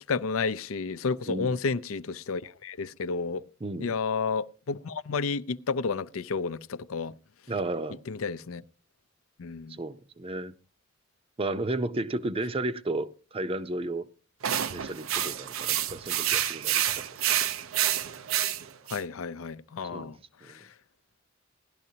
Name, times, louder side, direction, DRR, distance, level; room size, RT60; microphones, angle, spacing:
voice 1, 0.0-3.5 3.8-7.1 8.1-8.6 9.4-9.8 18.9-20.2 20.4-20.6, left 4 dB, 85° left, 0.5 m, -31 dB
voice 2, 1.3-1.6 3.6-3.9 7.5-8.0 9.8-10.5 11.4-14.1 14.7-17.1 19.9-20.1 20.4-20.6, right 2 dB, 30° right, 0.6 m, -33 dB
sound 1, 14.4-19.0, right 11 dB, 85° right, 0.7 m, -28 dB
17.5 x 12.0 x 2.8 m
head